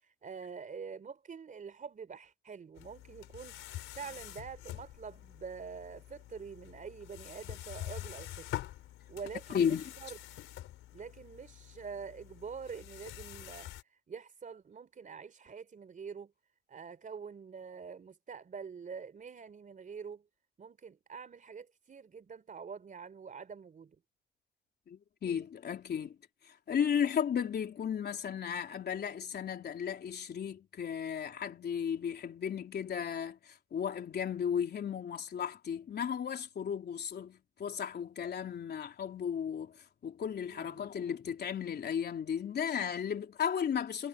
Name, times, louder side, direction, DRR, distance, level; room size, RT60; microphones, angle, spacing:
voice 1, 0.0-8.5 9.1-10.2 10.9-16.3 16.7-20.2 20.6-24.0 25.3-25.4 40.5-40.8, right 6 dB, 40° right, 3.9 m, -46 dB
sound 1, 2.8-13.8, left 14 dB, 90° left, 4.0 m, -46 dB
voice 2, 9.5-9.9 24.9-26.2 26.5-44.1, left 8 dB, 55° left, 3.7 m, -35 dB
cardioid pair, 90°, 20 cm